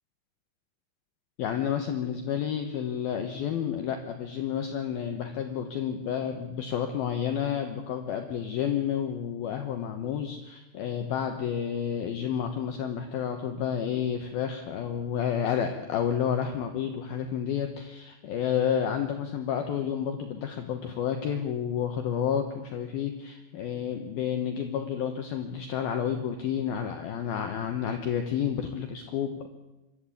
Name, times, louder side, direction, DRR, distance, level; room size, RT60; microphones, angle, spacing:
voice 1, 1.4-29.5, left 8 dB, 70° left, 5 dB, 2.5 m, -30 dB
25.5 x 13.0 x 8.6 m, 1.0 s
omnidirectional pair, 5.7 m